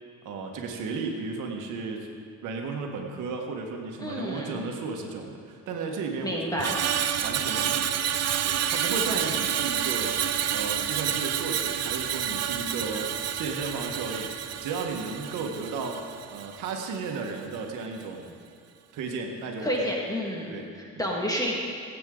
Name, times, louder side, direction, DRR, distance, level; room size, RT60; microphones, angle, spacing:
voice 1, 0.3-2.1 2.4-6.7 7.2-8.2 8.4-10.2 10.5-18.3 18.9-19.9 20.5-21.1, right 4 dB, 90° right, 2 dB, 1.6 m, -34 dB
voice 2, 4.0-4.6 6.2-6.8 19.6-20.6 21.0-21.5, equal, 10° left, -3 dB, 1.9 m, -29 dB
Screech, 6.6-17.0 17.3-17.6, right 9 dB, 55° right, 0.7 m, -29 dB
17.5 x 8.6 x 3.9 m, 2.4 s
cardioid pair, 90°, 30 cm